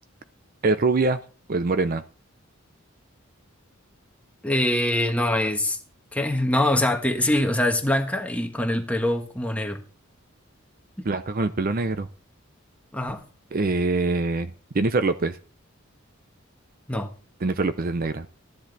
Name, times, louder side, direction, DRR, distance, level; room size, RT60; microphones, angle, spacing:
voice 1, 0.6-1.2 1.5-2.0 11.0-12.1 13.5-15.4 17.4-18.3, right 3 dB, 45° right, 11 dB, 0.6 m, -24 dB
voice 2, 4.4-5.8 6.1-9.8 11.0-11.1 12.9-13.2 16.9-17.1, left 1 dB, 5° left, 4 dB, 1.3 m, -24 dB
14.0 x 10.0 x 4.0 m, 0.38 s
head